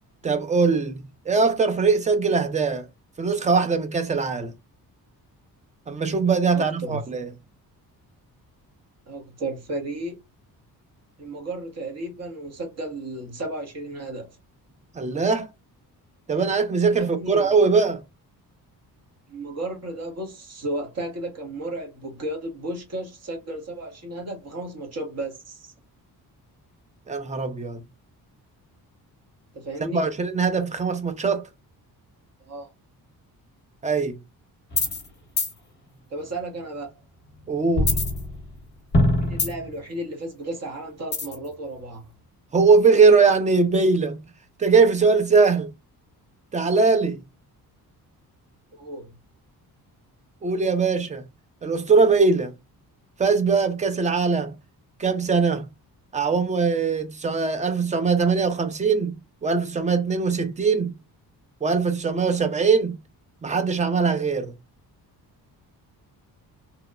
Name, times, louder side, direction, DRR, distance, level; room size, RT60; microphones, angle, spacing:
voice 1, 0.2-2.9 3.2-4.5 5.9-7.3 14.9-15.5 16.3-18.0 27.1-27.8 29.9-31.5 33.8-34.2 37.5-38.0 42.5-44.2 44.6-45.7 46.5-47.2 50.4-51.2 51.6-52.5 53.2-54.5 55.0-55.7 56.1-59.2 59.4-60.9 61.6-63.0 63.4-64.5, right 4 dB, 20° right, 0.4 m, -21 dB
voice 2, 6.5-7.0 9.1-10.2 11.2-14.4 17.0-17.5 19.3-25.7 29.5-30.1 32.5-32.7 36.1-36.9 39.2-42.1 48.7-49.1, right 1 dB, 40° right, 0.9 m, -33 dB
sound 1, 34.7-35.1 35.4-35.5 37.8-38.6 38.9-39.8 41.1-41.5, left 1 dB, 25° left, 0.8 m, -22 dB
2.9 x 2.0 x 2.3 m
cardioid pair, 160°, 38 cm